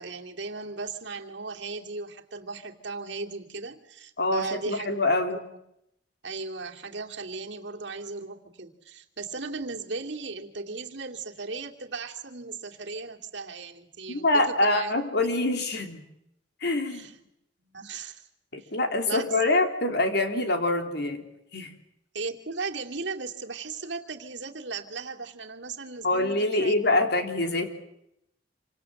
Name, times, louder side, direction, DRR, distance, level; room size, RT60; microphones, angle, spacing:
voice 1, 0.0-5.6 6.2-15.3 16.9-17.1 17.6-18.2 18.6-18.7 19.1-19.4 22.1-26.8, right 4 dB, 65° right, 2 dB, 2.6 m, -37 dB
voice 2, 4.2-5.4 14.1-16.0 16.6-17.1 18.5-21.2 21.5-21.7 26.0-27.7, left 2 dB, 60° left, 5 dB, 3.5 m, -25 dB
27.5 x 26.0 x 7.8 m, 0.80 s
head